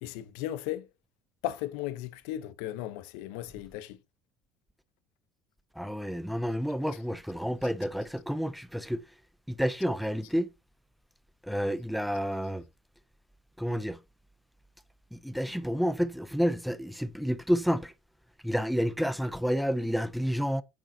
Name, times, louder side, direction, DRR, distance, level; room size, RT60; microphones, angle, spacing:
voice 1, 0.0-0.9 1.4-4.0, left 13 dB, 90° left, 0.8 m, -36 dB
voice 2, 5.8-9.0 9.5-10.5 11.5-12.6 13.6-14.0 15.1-17.9 18.4-20.6, equal, ahead, 0.4 m, -30 dB
8.5 x 6.4 x 2.8 m
cardioid pair, 155°, 0 cm